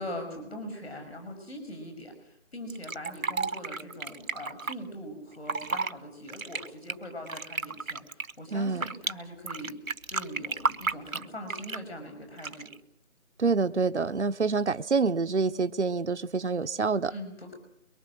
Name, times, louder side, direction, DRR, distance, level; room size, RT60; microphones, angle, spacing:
voice 1, 0.0-8.0 8.4-9.8 10.1-12.7 17.1-17.5, left 1 dB, 50° left, 5 dB, 6.1 m, -41 dB
Fill (with liquid), 2.7-4.7 5.3-5.9 6.3-9.1 9.5-11.9 12.4-12.8, right 4 dB, 80° right, 1.0 m, -32 dB
voice 2, 8.5-8.8 13.4-17.1, right 4 dB, 55° right, 9 dB, 0.8 m, -27 dB
23.0 x 23.0 x 6.5 m, 0.74 s
figure-of-eight pair, 170°, 40 cm